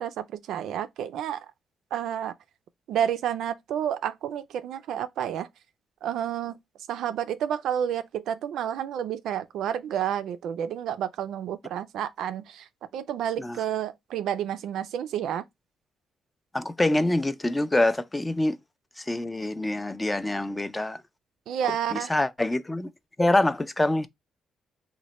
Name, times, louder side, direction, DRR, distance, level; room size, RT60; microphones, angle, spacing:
voice 1, 0.0-1.4 1.9-2.3 2.9-5.5 6.0-6.6 6.9-12.6 12.9-15.4 21.5-22.1, right 9 dB, 80° right, 0.3 m, -30 dB
voice 2, 16.5-18.6 19.0-21.0 21.9-22.9 23.2-24.1, left 1 dB, 15° left, 0.3 m, -25 dB
3.0 x 2.1 x 4.0 m
cardioid pair, 90°, 0 cm